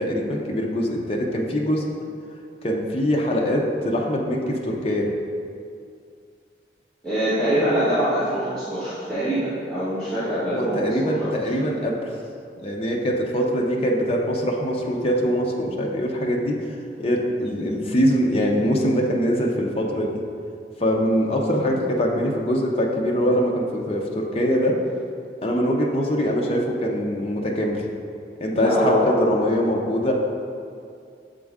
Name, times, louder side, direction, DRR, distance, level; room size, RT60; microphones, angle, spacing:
voice 1, 0.0-1.9 2.6-5.1 10.5-12.0 12.6-16.6 17.0-20.2 20.8-24.8 25.4-27.8 28.4-30.1, equal, 35° left, -1 dB, 0.6 m, -23 dB
voice 2, 7.0-11.3 11.6-11.7 28.5-29.1, equal, 5° left, -16 dB, 1.4 m, -24 dB
7.1 x 3.8 x 3.5 m, 2.3 s
head